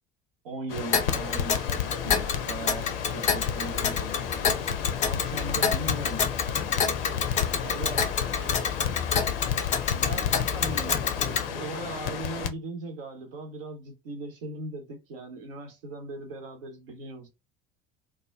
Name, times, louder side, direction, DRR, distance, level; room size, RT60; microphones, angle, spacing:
voice 1, 0.4-4.3 5.0-6.3 7.6-8.1 9.9-17.3, right 2 dB, 70° right, 0.8 m, -38 dB
Crackle, 0.7-12.5, left 8 dB, 70° left, 0.5 m, -33 dB
Tick, 0.9-11.5, left 6 dB, 25° left, 0.5 m, -28 dB
voice 2, 4.6-5.1 5.8-5.9 7.0-7.8 8.2-8.7, right 4 dB, 20° right, 0.6 m, -50 dB
2.2 x 2.0 x 3.3 m
figure-of-eight pair, 65°, 30 cm